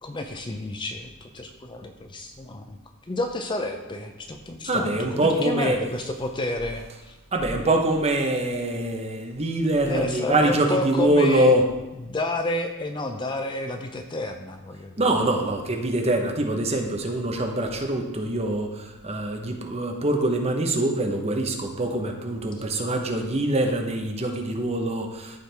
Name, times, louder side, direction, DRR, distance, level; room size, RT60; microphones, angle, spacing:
voice 1, 0.0-2.8 3.1-7.1 9.9-11.5 11.9-14.9, left 2 dB, 20° left, 5 dB, 0.5 m, -30 dB
voice 2, 4.7-5.8 7.3-11.7 15.0-25.4, right 1 dB, 30° right, 3 dB, 0.9 m, -24 dB
13.5 x 4.6 x 3.4 m, 1.0 s
head